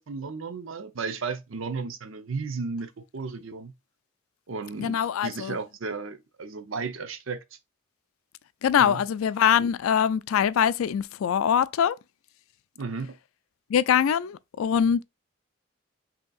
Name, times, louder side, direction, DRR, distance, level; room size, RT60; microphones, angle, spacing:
voice 1, 0.0-3.7 4.5-7.6 8.8-9.0 12.8-13.2, right 4 dB, 80° right, 0.6 m, -34 dB
voice 2, 4.8-5.6 8.6-12.0 13.7-15.0, left 8 dB, 90° left, 0.3 m, -23 dB
5.2 x 2.8 x 2.3 m
head